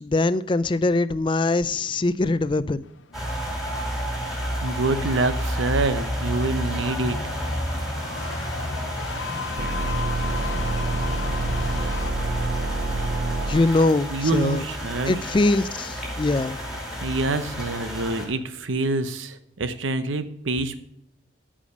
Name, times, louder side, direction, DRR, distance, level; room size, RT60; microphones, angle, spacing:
voice 1, 0.0-2.8 9.3-9.5 13.4-14.6 15.1-16.6, left 2 dB, 25° left, 0.4 m, -22 dB
sound 1, 2.8-12.1, left 6 dB, 85° left, 0.6 m, -38 dB
sound 2, 3.1-18.3, equal, ahead, 2.8 m, -31 dB
voice 2, 4.6-7.2 14.1-15.2 17.0-20.8, right 2 dB, 90° right, 0.9 m, -26 dB
sound 3, 9.6-13.6, right 2 dB, 50° right, 0.5 m, -27 dB
13.5 x 5.0 x 5.1 m
head